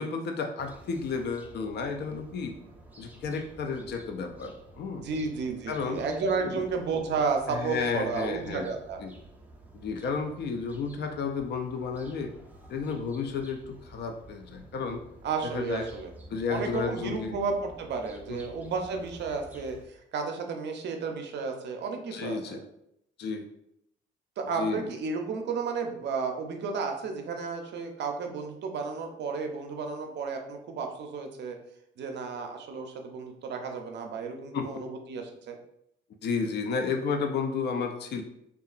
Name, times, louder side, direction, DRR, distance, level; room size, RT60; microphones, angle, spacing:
voice 1, 0.0-2.6 3.0-5.1 5.7-6.0 6.4-6.6 7.5-8.7 9.0-9.1 9.7-12.3 12.7-15.0 15.4-15.9 16.3-17.4 18.3-18.4 22.1-22.6 23.2-23.5 24.6-24.9 34.5-34.8 36.2-38.2, left 5 dB, 60° left, 5 dB, 0.4 m, -32 dB
sound 1, 0.6-19.8, right 1 dB, 10° right, 0.4 m, -51 dB
voice 2, 5.0-9.0 15.2-16.1 16.5-22.6 24.4-31.6 32.0-35.6, right 5 dB, 60° right, 4 dB, 0.5 m, -32 dB
2.7 x 2.3 x 2.4 m, 0.76 s
cardioid pair, 90°, 20 cm